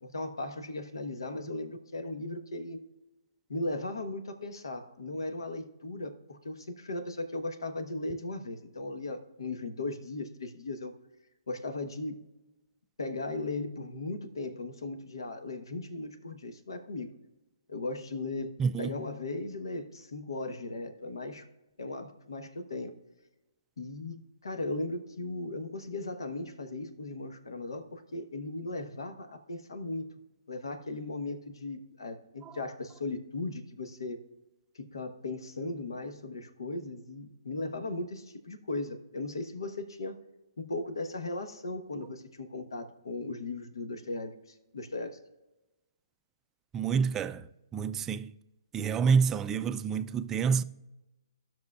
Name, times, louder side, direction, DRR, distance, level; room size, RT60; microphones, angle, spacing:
voice 1, 0.0-2.8 3.5-10.9 11.5-12.2 13.0-17.1 17.7-21.5 21.8-23.0 23.8-30.1 30.5-34.2 34.7-40.2 40.6-45.2, left 2 dB, 80° left, 1.1 m, -37 dB
voice 2, 18.6-19.0 46.7-47.5 47.7-48.3 48.7-50.6, right 6 dB, 15° right, 0.3 m, -28 dB
18.0 x 6.2 x 2.4 m
hypercardioid pair, 140°, 2 cm